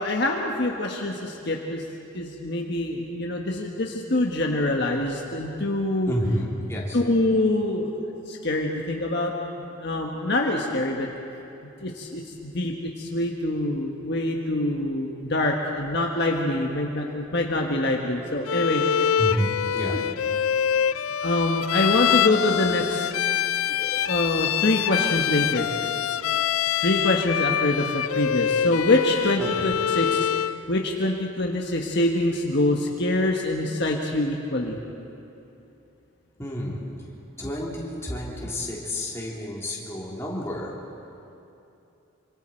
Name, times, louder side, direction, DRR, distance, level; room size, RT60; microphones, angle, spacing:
voice 1, 0.0-1.8 2.1-6.2 6.9-7.9 8.3-11.1 11.8-19.1 19.9-20.0 21.2-23.0 23.7-25.7 26.8-30.3 30.7-34.8, left 1 dB, 55° left, 0 dB, 1.4 m, -25 dB
voice 2, 6.1-7.0 19.2-20.0 29.4-29.7 36.4-36.9 37.4-40.7, equal, 15° left, -5 dB, 3.4 m, -30 dB
Bowed string instrument, 18.5-30.6, left 9 dB, 85° left, 0.4 m, -25 dB
26.5 x 25.5 x 4.6 m, 2.8 s
head